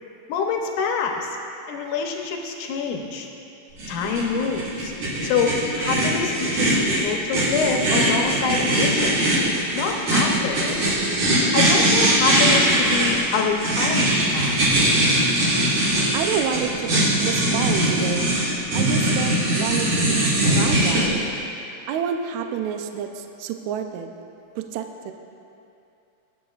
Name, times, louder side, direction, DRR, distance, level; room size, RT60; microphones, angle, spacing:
voice 1, 0.3-1.3 1.7-3.3 3.9-4.9 5.2-9.2 9.7-10.8 11.5-14.6, left 5 dB, 75° left, 2 dB, 2.2 m, -26 dB
sound 1, 3.8-21.0, right 1 dB, 55° right, 3.5 m, -21 dB
voice 2, 16.1-18.3 18.7-20.3 20.6-21.2 21.9-24.2 24.6-25.1, right 8 dB, 80° right, 6 dB, 1.7 m, -28 dB
21.0 x 8.8 x 2.4 m, 2.7 s
omnidirectional pair, 3.9 m